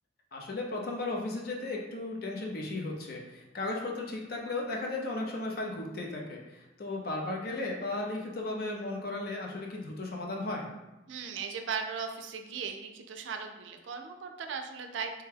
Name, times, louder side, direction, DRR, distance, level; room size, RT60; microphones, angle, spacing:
voice 1, 0.3-10.7, left 2 dB, 50° left, -1 dB, 0.5 m, -35 dB
voice 2, 11.1-15.2, right 6 dB, 75° right, 5 dB, 0.4 m, -37 dB
3.4 x 2.2 x 3.3 m, 1.0 s
head